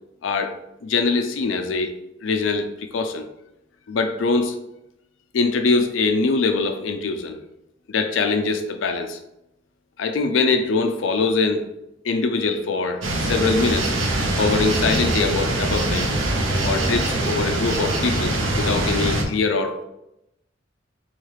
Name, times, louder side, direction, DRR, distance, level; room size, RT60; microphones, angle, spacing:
voice 1, 0.2-0.5 0.8-1.9 2.2-3.3 3.9-4.6 5.3-7.4 7.9-9.2 10.0-11.6 12.0-14.0 14.4-16.1 16.6-19.8, left 4 dB, 75° left, 6 dB, 0.5 m, -23 dB
sound 1, 13.0-19.2, right 1 dB, 80° right, 0.7 m, -23 dB
4.0 x 2.3 x 3.2 m, 0.86 s
head